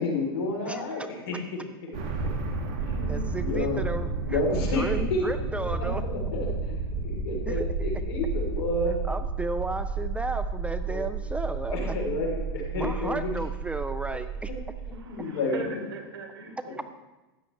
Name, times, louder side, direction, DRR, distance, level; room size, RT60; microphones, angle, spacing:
voice 1, 0.0-2.0 2.8-3.8 4.3-9.0 10.9-11.0 11.7-13.3 15.1-15.6 16.7-16.8, left 2 dB, 75° left, 0 dB, 3.6 m, -31 dB
voice 2, 0.7-1.1 3.1-6.0 7.5-7.9 8.9-11.9 12.8-14.5, right 3 dB, 10° right, 10 dB, 0.4 m, -34 dB
sound 1, 1.9-15.0, right 4 dB, 50° right, 2.2 m, -31 dB
voice 3, 14.9-16.8, right 4 dB, 75° right, 3 dB, 2.0 m, -40 dB
13.0 x 9.0 x 3.3 m, 1.1 s
hypercardioid pair, 110°, 13 cm